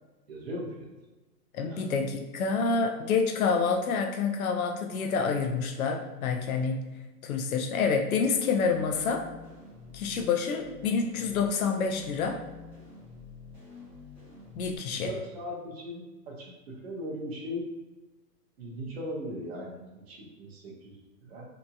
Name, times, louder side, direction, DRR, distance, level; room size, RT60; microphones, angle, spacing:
voice 1, 0.3-0.9 1.6-1.9 14.9-17.7 18.6-21.4, equal, 40° right, -2 dB, 0.6 m, -39 dB
voice 2, 1.5-6.8 7.2-9.3 9.9-12.4 14.6-15.1, left 5 dB, 60° left, 4 dB, 0.5 m, -28 dB
sound 1, 8.2-14.8, left 4 dB, 20° left, 1.0 m, -48 dB
2.8 x 2.6 x 2.2 m, 1.2 s
hypercardioid pair, 165°, 47 cm